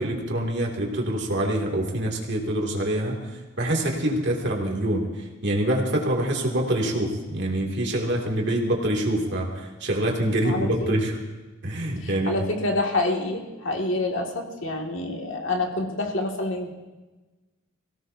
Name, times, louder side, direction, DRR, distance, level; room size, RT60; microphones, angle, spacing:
voice 1, 0.0-11.2 11.6-12.4, right 1 dB, 60° right, -1 dB, 2.5 m, -25 dB
voice 2, 10.4-10.9 12.0-16.7, left 2 dB, 65° left, 1 dB, 2.2 m, -27 dB
24.0 x 17.0 x 2.7 m, 1.2 s
head